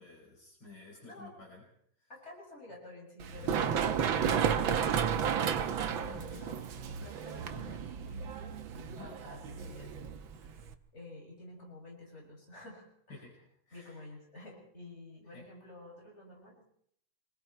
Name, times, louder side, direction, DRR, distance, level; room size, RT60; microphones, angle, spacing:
voice 1, 0.0-1.6 2.0-2.1 6.0-6.4 8.9-9.1 13.1-14.0 15.3-15.4, left 3 dB, 55° left, -1 dB, 5.7 m, -53 dB
voice 2, 2.1-5.3 5.8-6.7 7.0-9.9 10.3-10.5 10.9-13.3 13.7-16.7, left 2 dB, 30° left, -1 dB, 6.9 m, -50 dB
Run, 3.2-10.7, right 7 dB, 70° right, 1.9 m, -32 dB
27.0 x 21.5 x 4.4 m, 0.67 s
omnidirectional pair, 2.3 m